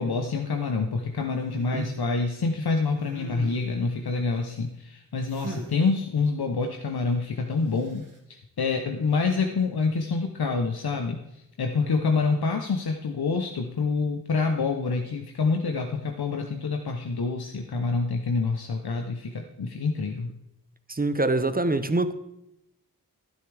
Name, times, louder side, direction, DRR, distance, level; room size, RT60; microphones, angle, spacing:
voice 1, 0.0-8.0 8.3-11.2 11.6-20.3, left 4 dB, 80° left, 0.9 m, -27 dB
sound 1, 1.5-2.0 2.9-3.8 5.3-5.8 7.7-8.2, right 1 dB, 55° right, 2.7 m, -39 dB
voice 2, 20.9-22.1, right 2 dB, 25° right, 0.8 m, -25 dB
11.5 x 10.5 x 3.4 m
cardioid pair, 45°, 37 cm